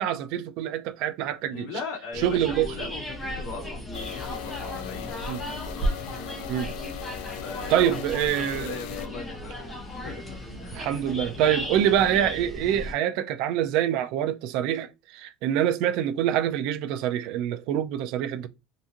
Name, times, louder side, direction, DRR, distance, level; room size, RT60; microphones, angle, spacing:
voice 1, 0.0-1.7 2.2-2.9 5.3-5.4 6.5-6.7 7.7-8.7 10.7-18.5, right 10 dB, 50° right, 0.5 m, -25 dB
voice 2, 1.5-5.1 7.1-8.0 8.4-10.9, left 4 dB, 85° left, 2.0 m, -39 dB
sound 1, 2.1-12.9, equal, 10° left, 0.9 m, -35 dB
sound 2, 3.9-9.1, left 13 dB, 70° left, 0.4 m, -39 dB
3.8 x 2.6 x 2.8 m
cardioid pair, 170°, 0 cm